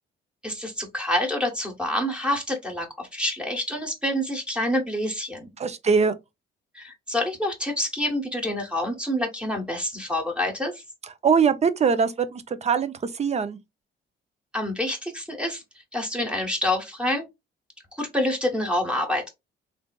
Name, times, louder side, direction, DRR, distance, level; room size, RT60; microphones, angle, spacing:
voice 1, 0.4-5.5 6.7-10.8 14.5-15.6 15.9-17.2 17.9-19.3, left 1 dB, 5° right, 1.1 m, -27 dB
voice 2, 5.6-6.1 11.2-13.6, right 6 dB, 35° right, 0.5 m, -22 dB
3.3 x 2.6 x 2.3 m
cardioid pair, 90°, 20 cm